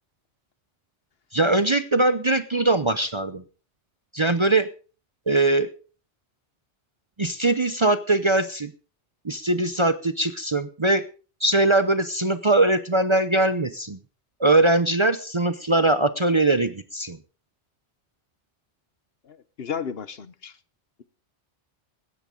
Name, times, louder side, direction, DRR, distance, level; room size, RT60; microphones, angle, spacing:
voice 1, 1.3-3.4 4.1-4.7 5.3-5.7 7.2-8.7 9.2-11.0 11.4-14.0 14.4-17.2, right 2 dB, 30° right, 11 dB, 0.7 m, -21 dB
voice 2, 19.2-20.6, left 7 dB, 60° left, 14 dB, 1.1 m, -34 dB
17.0 x 13.0 x 3.8 m, 0.37 s
omnidirectional pair, 1.2 m